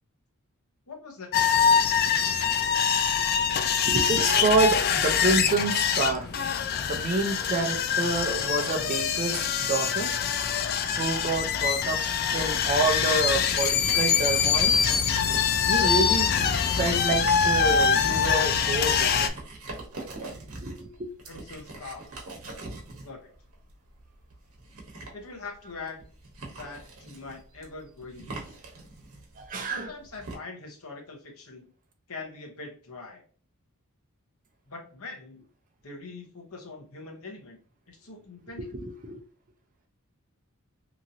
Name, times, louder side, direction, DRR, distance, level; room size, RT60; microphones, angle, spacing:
voice 1, 0.9-1.5 21.3-22.0 23.0-23.3 25.1-26.1 26.5-28.4 29.6-31.7 32.1-33.2 34.7-35.4 35.8-37.6 37.9-38.7, left 3 dB, 70° left, 1 dB, 0.9 m, -42 dB
sound 1, 1.3-19.3, left 7 dB, 45° left, 0.3 m, -24 dB
voice 2, 3.8-6.3 6.7-10.1 11.0-12.0 12.3-14.8 15.7-16.3 16.8-19.3 20.6-21.1 29.4-29.9 38.6-39.2, right 3 dB, 35° right, 4 dB, 0.5 m, -28 dB
sound 2, 12.3-30.3, right 2 dB, 70° right, 1.0 m, -43 dB
2.9 x 2.6 x 2.6 m, 0.41 s
head